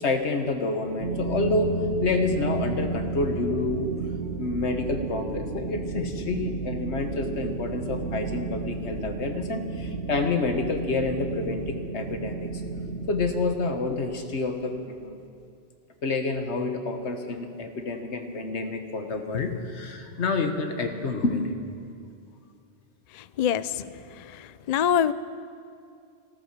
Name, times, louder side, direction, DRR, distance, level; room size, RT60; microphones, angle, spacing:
voice 1, 0.0-1.7 2.0-3.9 4.4-12.5 13.1-15.2 16.0-21.5, left 3 dB, 80° left, 5 dB, 1.5 m, -28 dB
sound 1, 1.0-13.4, right 4 dB, 75° right, 1.3 m, -32 dB
voice 2, 23.1-23.8 24.2-25.1, left 9 dB, 60° left, 15 dB, 0.4 m, -25 dB
14.5 x 14.0 x 6.7 m, 2.4 s
omnidirectional pair, 1.1 m